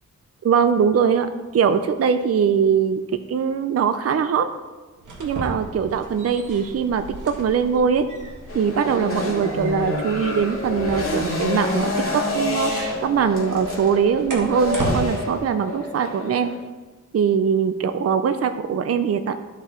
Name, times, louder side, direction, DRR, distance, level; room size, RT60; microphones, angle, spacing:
voice 1, 0.4-3.0 3.3-4.5 5.2-8.1 8.5-16.5 17.1-19.4, right 7 dB, 50° right, 9 dB, 0.5 m, -21 dB
sound 1, 5.0-15.0, right 2 dB, 75° right, 1.8 m, -35 dB
sound 2, 8.5-16.6, left 2 dB, 45° left, 2.3 m, -28 dB
13.0 x 5.9 x 4.3 m, 1.3 s
wide cardioid pair, 160°, 31 cm